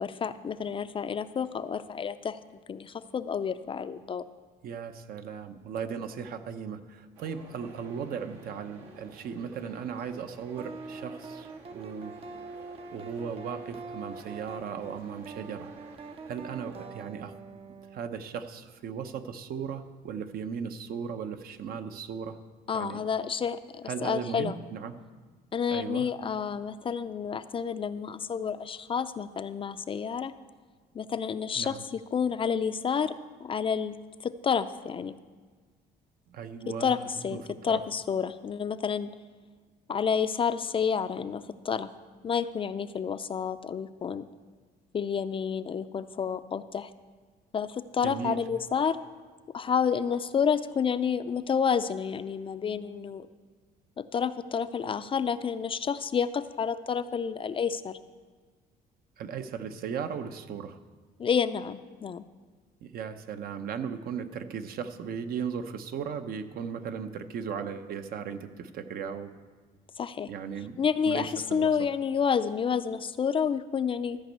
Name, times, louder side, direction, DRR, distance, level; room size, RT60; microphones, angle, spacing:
voice 1, 0.0-2.4 2.7-4.2 22.7-24.6 25.5-30.3 30.9-33.1 33.4-33.9 34.2-35.1 36.7-39.1 39.9-41.9 42.2-44.3 44.9-46.9 47.5-49.0 49.5-53.3 54.0-58.0 61.2-62.2 70.0-70.3 70.8-74.2, left 7 dB, 30° left, 12 dB, 0.4 m, -29 dB
voice 2, 4.6-12.1 12.9-15.7 16.3-17.3 17.9-22.4 22.7-23.0 23.9-24.9 25.7-26.1 31.6-31.8 36.3-37.8 48.0-48.4 59.2-60.8 62.8-69.3 70.3-70.8 71.1-71.7, right 7 dB, 60° right, 9 dB, 0.8 m, -37 dB
sound 1, 7.2-16.9, right 3 dB, 85° right, 2.0 m, -52 dB
sound 2, 10.6-18.0, right 4 dB, 35° right, 0.6 m, -44 dB
13.5 x 5.3 x 8.0 m, 1.4 s
cardioid pair, 110°, 17 cm